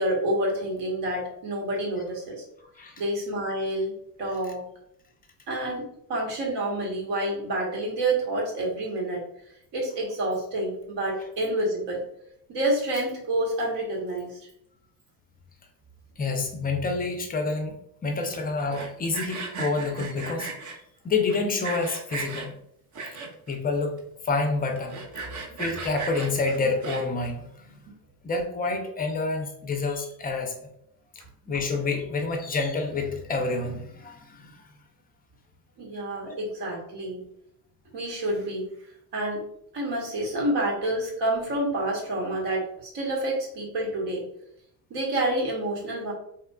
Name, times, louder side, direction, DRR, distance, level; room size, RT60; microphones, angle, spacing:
voice 1, 0.0-2.4 3.0-4.7 5.5-9.2 9.7-12.0 12.5-14.5 35.8-37.2 37.9-38.7 39.1-39.4 39.7-44.3 44.9-46.1, right 1 dB, 55° right, -2 dB, 1.2 m, -28 dB
voice 2, 2.6-3.0 4.4-4.5 16.2-17.8 18.0-20.5 21.0-22.5 23.1-23.2 23.5-25.0 25.4-27.8 28.2-30.5 31.4-34.7 36.1-36.3, left 3 dB, 20° left, 3 dB, 0.5 m, -28 dB
Sawing, 18.6-20.8 21.3-22.5 22.9-23.5 24.0-24.1 24.3-24.4 24.8-27.3, right 4 dB, 35° right, 0.7 m, -36 dB
3.0 x 2.3 x 2.2 m, 0.73 s
supercardioid pair, 80°, 49 cm